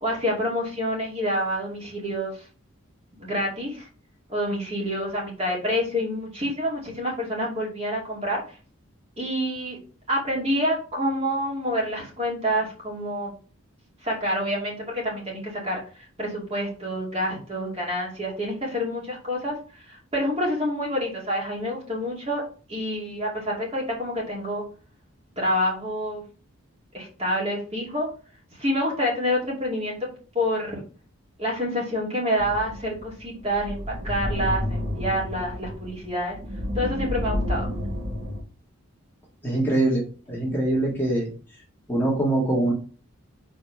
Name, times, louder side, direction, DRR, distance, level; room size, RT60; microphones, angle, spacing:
voice 1, 0.0-2.5 3.2-3.9 4.3-8.6 9.2-9.8 10.1-13.3 14.0-15.8 16.2-19.6 19.8-22.4 22.7-24.6 25.4-26.2 26.9-28.1 28.6-30.1 30.3-30.8 31.4-36.4 36.7-37.7, equal, 30° right, -3 dB, 2.6 m, -27 dB
sound 1, 32.4-38.4, left 1 dB, 55° right, 2.9 m, -30 dB
voice 2, 39.4-40.0 40.3-41.3 41.9-42.7, right 1 dB, 10° left, -5 dB, 1.7 m, -23 dB
5.0 x 4.0 x 5.7 m, 0.39 s
head